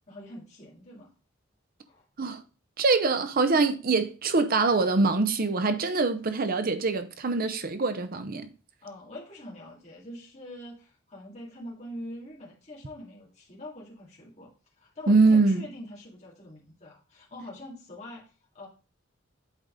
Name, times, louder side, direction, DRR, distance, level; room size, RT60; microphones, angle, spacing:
voice 1, 0.1-1.1 1.9-2.0 8.8-18.7, left 1 dB, 35° left, 2.1 m, -44 dB
voice 2, 2.8-8.5 15.1-15.6, right 3 dB, 50° right, 0.7 m, -24 dB
8.2 x 4.1 x 3.7 m
head